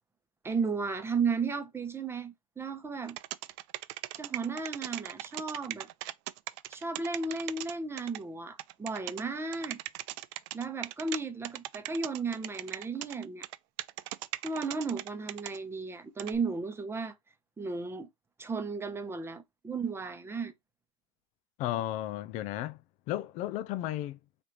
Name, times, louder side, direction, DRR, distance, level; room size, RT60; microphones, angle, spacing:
voice 1, 0.4-3.2 4.2-5.9 6.7-9.8 10.5-13.5 14.4-17.1 17.6-18.1 18.4-20.5, right 4 dB, 15° right, 0.8 m, -34 dB
sound 1, 3.1-8.2 8.6-9.2 9.5-11.2 11.4-15.6 16.2-16.4, right 17 dB, 55° right, 0.4 m, -38 dB
voice 2, 21.6-22.8 23.1-24.2, left 13 dB, 45° left, 0.4 m, -34 dB
3.4 x 3.2 x 3.8 m
hypercardioid pair, 100°, 18 cm